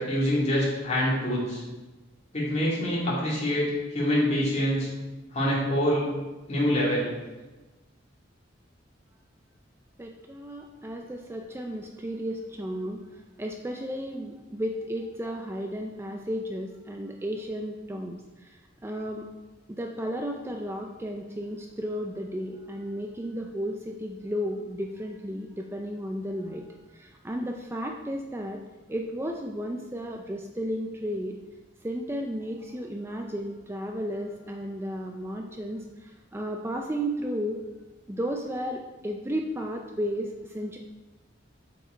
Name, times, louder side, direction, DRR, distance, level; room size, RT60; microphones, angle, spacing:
voice 1, 0.0-1.6 2.3-4.9 5.3-6.1 6.5-7.1, equal, 40° left, -6 dB, 2.6 m, -25 dB
voice 2, 10.0-13.0 13.4-18.2 18.8-19.3 19.7-26.7 27.0-28.6 28.9-31.4 31.8-37.6 38.1-40.8, equal, 15° right, 2 dB, 0.4 m, -33 dB
7.6 x 5.4 x 4.4 m, 1.1 s
head